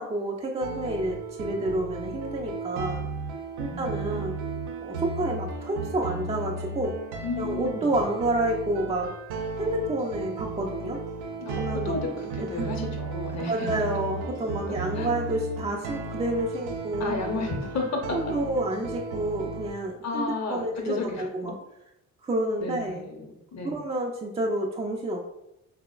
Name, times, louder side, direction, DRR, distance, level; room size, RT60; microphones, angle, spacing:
voice 1, 0.0-3.0 3.6-4.3 4.8-6.9 7.4-9.1 9.6-11.0 11.6-11.9 12.4-12.9 13.5-17.4 18.1-21.5 22.2-23.0 23.6-25.2, right 1 dB, 15° right, 1 dB, 0.4 m, -29 dB
sound 1, 0.6-19.7, right 3 dB, 70° right, 0.5 m, -35 dB
voice 2, 7.2-7.9 11.4-13.7 14.7-15.1 17.0-18.2 20.0-21.5 22.6-23.2 23.5-23.8, left 3 dB, 40° left, 2 dB, 0.8 m, -32 dB
3.5 x 2.0 x 2.3 m, 0.84 s
hypercardioid pair, 45°, 39 cm